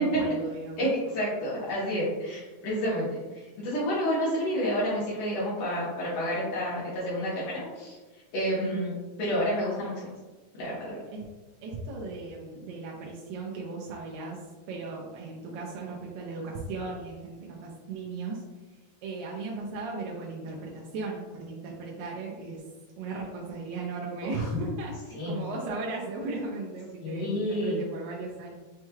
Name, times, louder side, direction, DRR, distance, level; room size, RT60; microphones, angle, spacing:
voice 1, 0.0-0.9 8.6-8.9 11.1-11.2 11.6-14.4 14.7-18.4 19.0-22.6 23.0-28.6, right 3 dB, 85° right, -3 dB, 2.0 m, -36 dB
voice 2, 0.8-8.0 8.3-8.9 9.2-10.1 10.6-11.0 25.1-25.4 27.0-27.8, equal, 70° left, -9 dB, 2.4 m, -29 dB
6.5 x 3.1 x 2.2 m, 1.2 s
omnidirectional pair, 4.5 m